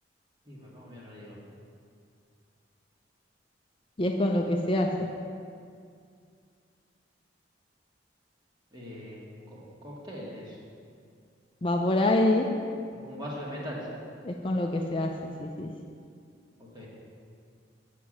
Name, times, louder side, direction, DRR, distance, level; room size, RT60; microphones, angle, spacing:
voice 1, 0.5-1.4 8.7-10.6 13.0-13.9 16.6-16.9, equal, 25° right, -5 dB, 1.9 m, -41 dB
voice 2, 4.0-4.9 11.6-12.5 14.2-15.1 15.4-15.7, left 1 dB, 30° left, 2 dB, 0.5 m, -25 dB
7.4 x 5.9 x 7.6 m, 2.3 s
head